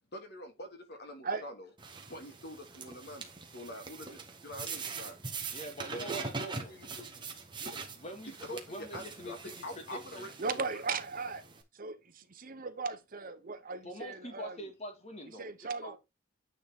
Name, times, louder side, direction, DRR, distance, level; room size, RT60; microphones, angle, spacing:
voice 1, 0.1-1.7 2.1-5.2 5.9-7.9 8.3-10.8, equal, 55° left, 1.9 m, -46 dB
sound 1, 1.8-11.6, right 4 dB, 25° right, 1.3 m, -43 dB
voice 2, 5.5-6.7 8.0-10.3 13.8-16.0, equal, 30° left, 1.9 m, -45 dB
voice 3, 10.4-11.4 11.7-14.7 15.4-16.0, right 4 dB, 45° right, 0.9 m, -37 dB
9.5 x 3.9 x 3.6 m
head